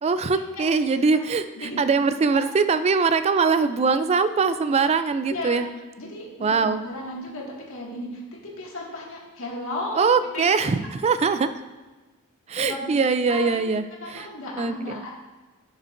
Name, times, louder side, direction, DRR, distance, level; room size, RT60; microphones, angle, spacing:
voice 1, 0.0-5.7 6.4-6.8 9.9-11.5 12.5-14.3 14.6-15.0, right 4 dB, 30° right, 11 dB, 0.3 m, -22 dB
voice 2, 5.3-5.6 6.0-8.2 8.6-10.5 12.6-13.0 13.3-13.6 14.0-15.1, left 1 dB, 65° left, -3 dB, 1.9 m, -34 dB
11.0 x 6.3 x 2.5 m, 1.2 s
head